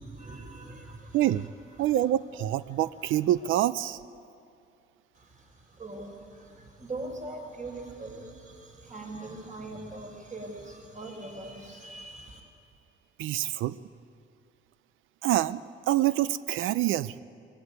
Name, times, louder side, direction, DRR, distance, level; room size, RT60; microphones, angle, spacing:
voice 1, 0.0-1.5 1.8-1.9 5.1-12.4, right 2 dB, 40° right, 1 dB, 5.2 m, -42 dB
voice 2, 1.1-1.5 1.8-4.0 13.2-13.7 15.2-15.6 15.9-17.2, right 13 dB, 80° right, 15 dB, 0.5 m, -26 dB
20.5 x 14.5 x 9.4 m, 2.6 s
cardioid pair, 90°, 20 cm